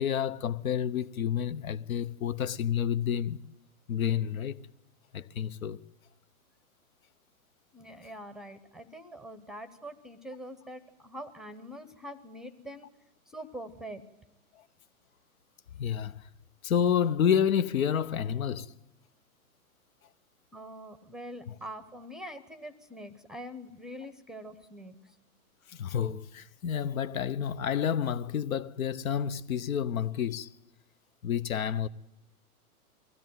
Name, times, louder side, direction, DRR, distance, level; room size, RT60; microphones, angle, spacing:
voice 1, 0.0-3.4 3.9-4.6 5.1-5.8 15.8-16.3 16.6-18.8 25.7-30.5 31.2-31.9, left 8 dB, 65° left, 1.0 m, -29 dB
voice 2, 7.7-12.9 13.3-14.0 20.5-25.2, equal, ahead, 0.7 m, -44 dB
23.0 x 16.0 x 9.3 m
hypercardioid pair, 125°, 44 cm